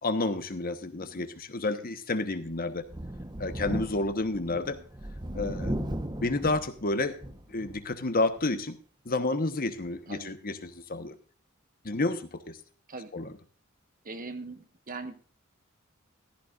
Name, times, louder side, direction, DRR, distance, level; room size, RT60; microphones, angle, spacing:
voice 1, 0.0-2.8 3.4-4.8 5.3-7.1 7.5-8.8 9.0-11.1 11.8-12.6 13.1-13.3, left 2 dB, 45° left, 10 dB, 1.2 m, -30 dB
Thunder, 2.8-7.9 8.4-8.5 9.8-9.9, right 1 dB, 20° right, 1.1 m, -37 dB
voice 2, 4.5-4.9 10.1-10.3 12.9-13.1 14.0-15.3, right 3 dB, 40° right, 9 dB, 1.3 m, -42 dB
15.0 x 13.5 x 2.5 m, 0.39 s
head